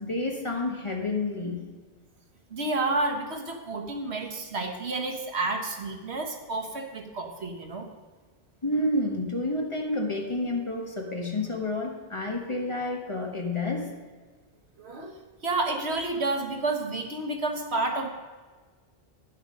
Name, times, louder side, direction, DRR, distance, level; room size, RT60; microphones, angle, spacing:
voice 1, 0.0-1.6 8.6-13.9, left 2 dB, 30° left, 1 dB, 1.3 m, -29 dB
voice 2, 2.5-7.9 14.8-15.1 15.4-18.1, right 2 dB, 90° right, 4 dB, 1.5 m, -30 dB
10.5 x 7.7 x 5.3 m, 1.4 s
omnidirectional pair, 1.1 m